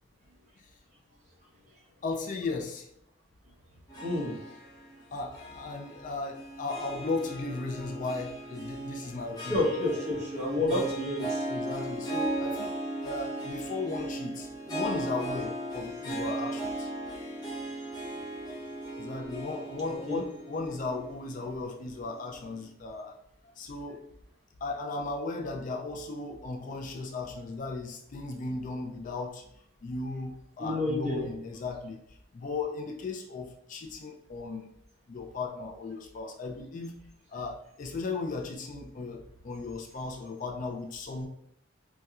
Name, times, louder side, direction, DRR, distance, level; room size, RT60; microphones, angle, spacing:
voice 1, 2.0-2.9 5.1-9.7 10.6-10.9 11.5-12.8 13.0-16.9 19.0-23.2 23.4-24.0 24.6-29.5 29.8-32.0 32.3-34.7 35.1-36.9 37.3-41.3, left 3 dB, 40° left, 1 dB, 0.4 m, -36 dB
Harp, 3.9-22.3, right 1 dB, 20° left, 0.9 m, -37 dB
voice 2, 4.0-4.4 9.5-11.4 20.1-20.2 30.6-31.3, left 1 dB, 35° right, -5 dB, 1.1 m, -29 dB
4.0 x 2.3 x 2.3 m, 0.72 s
head